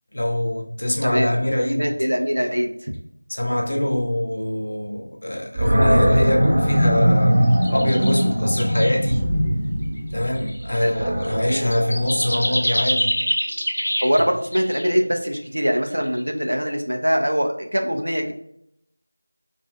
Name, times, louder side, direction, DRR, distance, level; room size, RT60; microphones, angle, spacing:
voice 1, 0.1-2.0 3.3-9.2 10.1-13.1, left 1 dB, 50° left, 0 dB, 0.9 m, -23 dB
voice 2, 1.0-1.4 1.8-2.9 10.8-10.9 11.5-11.7 14.0-18.3, equal, 85° right, 3 dB, 0.7 m, -23 dB
Animal, 5.6-12.7, equal, 20° right, 0.6 m, -21 dB
sound 1, 7.4-8.3 8.5-9.0 9.8-10.0 10.3-14.2 14.5-14.9 16.0-16.3, equal, 80° left, 0.9 m, -26 dB
4.9 x 2.6 x 2.3 m, 0.75 s
figure-of-eight pair, 175°, 0 cm